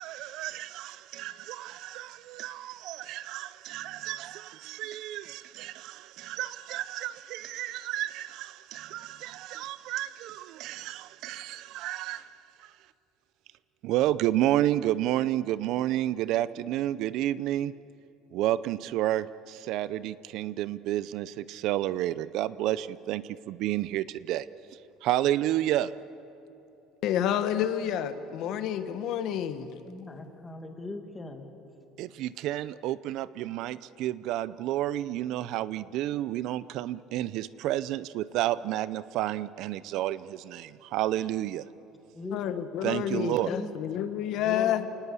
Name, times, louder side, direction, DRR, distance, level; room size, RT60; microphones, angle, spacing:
voice 1, 0.0-12.9 13.8-17.7 18.3-25.9 32.0-41.7 42.8-43.6, right 13 dB, 60° right, 0.5 m, -31 dB
voice 2, 27.0-29.7 42.3-44.9, left 10 dB, 55° left, 1.2 m, -29 dB
voice 3, 29.8-31.5 42.1-42.6 43.4-43.7 44.3-44.9, left 3 dB, 15° left, 2.0 m, -39 dB
27.5 x 19.0 x 8.3 m
cardioid pair, 160°, 0 cm